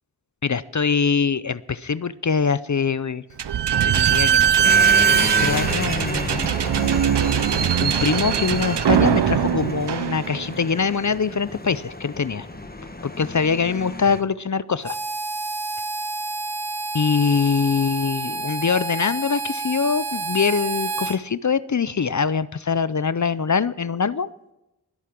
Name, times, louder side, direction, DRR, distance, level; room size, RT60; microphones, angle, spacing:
voice 1, 0.4-3.2 3.8-6.5 7.8-12.5 13.0-15.0 16.9-24.3, left 5 dB, 45° left, 17 dB, 0.5 m, -23 dB
Slam / Squeak, 3.4-10.7, right 9 dB, 90° right, 0.5 m, -20 dB
sound 1, 4.6-14.2, left 2 dB, 25° left, 1.3 m, -32 dB
Harmonica, 14.8-21.2, right 3 dB, 70° right, 0.9 m, -29 dB
21.5 x 8.4 x 6.0 m, 0.91 s
wide cardioid pair, 55°, 40 cm